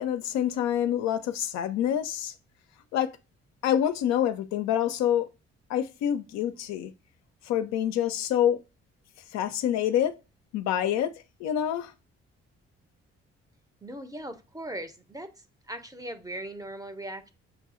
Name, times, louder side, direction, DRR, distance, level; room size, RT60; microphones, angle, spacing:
voice 1, 0.0-2.3 2.9-3.2 3.6-5.3 5.7-6.9 7.4-8.6 9.3-10.2 10.5-11.9, left 10 dB, 60° left, 0.4 m, -27 dB
voice 2, 13.8-15.3 15.7-17.3, right 1 dB, 10° right, 0.6 m, -39 dB
6.2 x 2.6 x 2.4 m
figure-of-eight pair, 40°, 32 cm